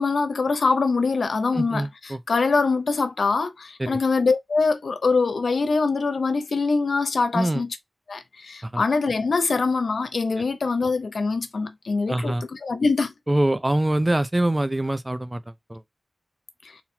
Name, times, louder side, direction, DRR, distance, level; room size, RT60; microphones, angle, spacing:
voice 1, 0.0-7.8 8.1-13.1, left 4 dB, 90° left, 0.7 m, -23 dB
voice 2, 1.5-2.2 3.8-4.0 7.3-7.6 8.6-8.8 12.1-12.4 13.3-15.4 15.7-15.8, right 1 dB, 20° right, 0.6 m, -24 dB
4.1 x 2.2 x 4.3 m
wide cardioid pair, 55°, 0 cm